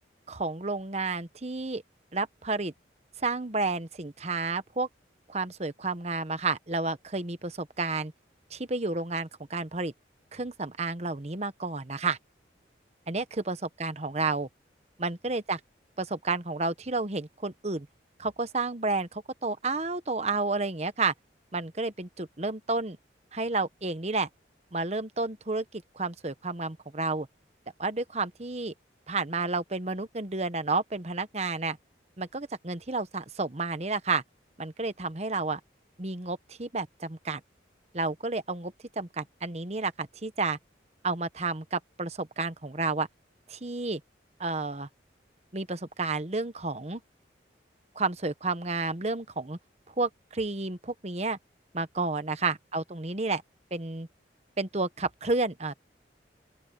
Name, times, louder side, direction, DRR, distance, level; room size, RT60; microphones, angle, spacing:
voice 1, 0.3-1.8 2.1-2.7 3.2-4.9 5.3-8.1 8.5-9.9 10.3-12.2 13.1-14.5 15.0-15.6 16.0-17.9 18.2-21.1 21.5-23.0 23.3-24.3 24.7-27.3 27.8-28.7 29.1-31.8 32.2-34.2 34.6-35.6 36.0-37.4 37.9-40.6 41.0-43.1 43.5-44.0 44.4-44.9 45.5-47.0 47.9-49.6 50.0-51.4 51.7-53.4 53.7-54.1 54.6-55.7, right 3 dB, 35° right, 1.0 m, -31 dB
open air
head